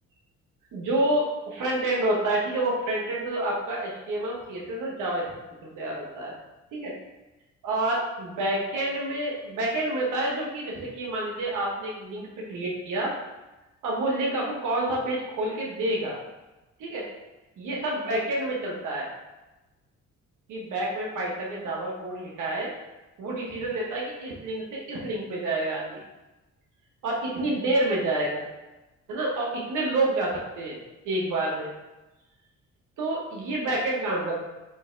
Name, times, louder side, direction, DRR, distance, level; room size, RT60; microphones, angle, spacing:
voice 1, 0.7-5.3 5.6-6.3 6.7-6.9 7.6-13.1 13.8-16.2 16.8-17.0 17.6-19.1 20.5-22.7 23.2-26.0 27.0-28.4 29.1-30.8 31.0-31.7 33.0-34.4, right 1 dB, 80° right, -3 dB, 1.2 m, -28 dB
3.8 x 2.8 x 4.5 m, 1.0 s
cardioid pair, 90°, 30 cm